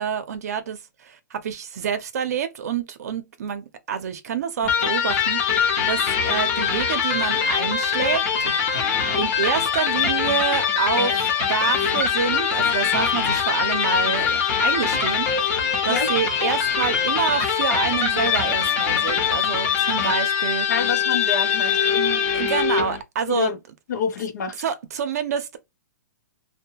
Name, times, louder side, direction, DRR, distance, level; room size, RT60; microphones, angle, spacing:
voice 1, 0.0-8.6 9.2-15.3 15.8-20.7 22.3-23.5 24.6-25.6, right 7 dB, 60° right, 0.6 m, -27 dB
Electric guitar, 4.6-23.0, left 7 dB, 30° left, 0.7 m, -22 dB
voice 2, 20.7-22.2 23.3-23.6 23.9-24.6, left 6 dB, 70° left, 0.8 m, -27 dB
2.7 x 2.2 x 2.8 m
hypercardioid pair, 170°, 10 cm